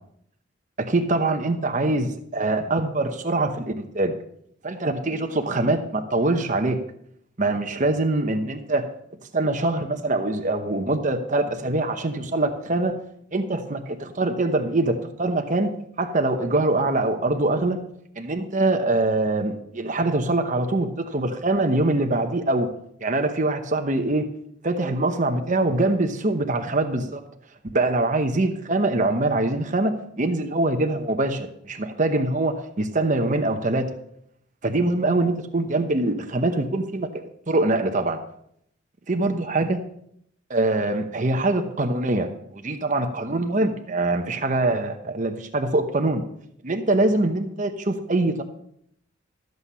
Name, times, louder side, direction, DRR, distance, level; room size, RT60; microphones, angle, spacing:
voice 1, 0.8-4.1 4.6-6.8 7.4-8.9 9.3-13.0 13.3-15.7 16.0-17.8 18.2-22.7 23.0-24.3 24.6-27.2 27.7-33.9 34.6-37.1 37.5-38.2 39.1-39.8 40.5-46.2 46.6-48.4, right 2 dB, 40° right, 6 dB, 0.9 m, -23 dB
13.0 x 8.0 x 5.5 m, 0.72 s
head